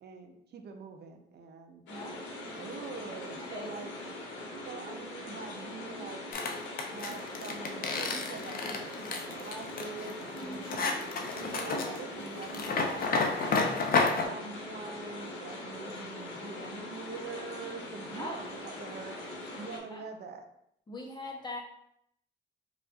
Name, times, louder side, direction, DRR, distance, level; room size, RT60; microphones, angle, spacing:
voice 1, 0.0-1.8 2.6-3.9 4.6-6.2 6.9-10.9 11.3-13.3 14.2-19.2 19.6-20.4, right 5 dB, 55° right, 5 dB, 0.6 m, -44 dB
sound 1, 1.9-19.8, left 1 dB, 75° left, 1.0 m, -42 dB
voice 2, 1.9-2.3 3.5-3.7 10.4-11.1 18.1-18.4 19.9-20.1 20.9-21.6, left 2 dB, 20° left, 1 dB, 0.9 m, -41 dB
sound 2, 6.3-14.3, left 4 dB, 45° left, 0.5 m, -31 dB
4.8 x 2.5 x 2.5 m, 0.73 s
cardioid pair, 90°, 20 cm